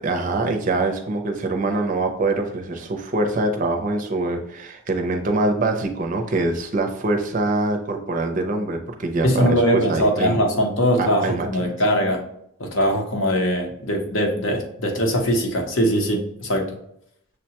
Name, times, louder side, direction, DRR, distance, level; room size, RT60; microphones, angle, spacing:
voice 1, 0.0-10.4 11.0-11.5, right 2 dB, 35° right, 4 dB, 0.5 m, -24 dB
voice 2, 9.2-12.2 12.6-16.7, equal, 60° left, 3 dB, 0.8 m, -21 dB
6.5 x 2.2 x 2.8 m, 0.72 s
head